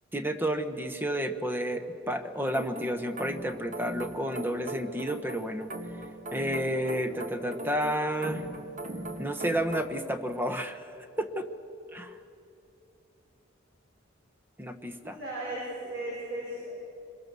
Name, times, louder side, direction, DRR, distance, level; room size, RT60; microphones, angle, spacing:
voice 1, 0.1-5.7 6.3-8.4 9.2-10.9 11.2-11.5 11.9-12.2 14.6-15.2, equal, 10° right, 8 dB, 1.1 m, -31 dB
sound 1, 2.5-9.9, right 2 dB, 40° right, 1.7 m, -40 dB
voice 2, 15.0-16.7, right 1 dB, 60° right, -5 dB, 5.9 m, -36 dB
26.0 x 22.0 x 6.9 m, 2.6 s
head